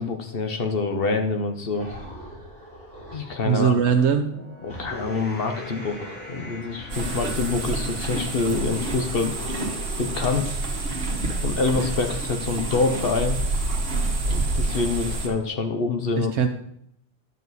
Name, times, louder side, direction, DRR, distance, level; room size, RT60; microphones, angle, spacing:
voice 1, 0.0-1.9 3.1-3.7 4.6-9.4 10.0-10.6 11.4-13.4 14.3-16.3, left 4 dB, 55° left, 5 dB, 1.0 m, -26 dB
sound 1, 1.7-3.6 4.7-7.5 8.4-10.4, left 1 dB, 90° left, 4.6 m, -41 dB
voice 2, 3.5-4.3 16.1-16.5, right 7 dB, 75° right, 6 dB, 0.9 m, -20 dB
sound 2, 3.7-10.2, left 1 dB, 10° left, 1.1 m, -45 dB
sound 3, 6.9-15.3, right 2 dB, 55° right, 1.5 m, -28 dB
11.0 x 6.9 x 4.1 m, 0.73 s
omnidirectional pair, 1.2 m